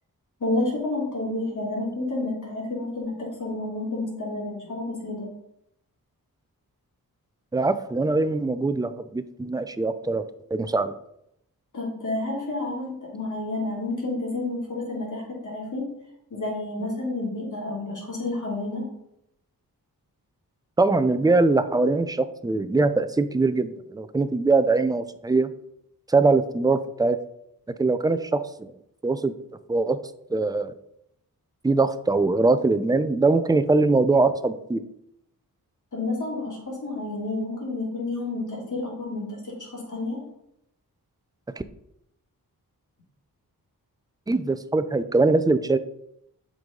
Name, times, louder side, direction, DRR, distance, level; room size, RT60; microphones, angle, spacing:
voice 1, 0.4-5.3 11.7-15.9 16.3-18.9 35.9-40.2, left 2 dB, 55° left, -3 dB, 2.9 m, -30 dB
voice 2, 7.5-10.2 10.5-10.9 20.8-25.5 26.1-27.2 27.8-28.7 29.0-29.3 29.7-30.0 30.3-30.7 31.6-34.8 44.3-45.8, right 3 dB, 10° right, 12 dB, 0.4 m, -22 dB
7.9 x 5.4 x 3.8 m, 0.78 s
wide cardioid pair, 90°, 36 cm